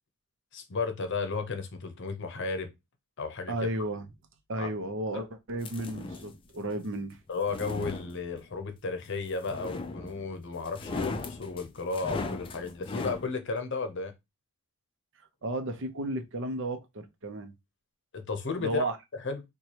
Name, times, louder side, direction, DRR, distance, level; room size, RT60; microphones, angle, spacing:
voice 1, 0.5-2.7 3.2-3.5 4.6-4.7 5.1-5.2 7.3-14.1 18.1-19.4, left 4 dB, 55° left, 0.7 m, -34 dB
voice 2, 3.5-4.0 4.5-7.2 15.4-17.5 18.6-19.0, right 1 dB, 60° right, 0.7 m, -33 dB
sound 1, 5.6-6.4 7.3-8.6 9.4-10.3 10.7-13.3, left 3 dB, 25° left, 0.3 m, -37 dB
4.6 x 2.2 x 2.8 m
head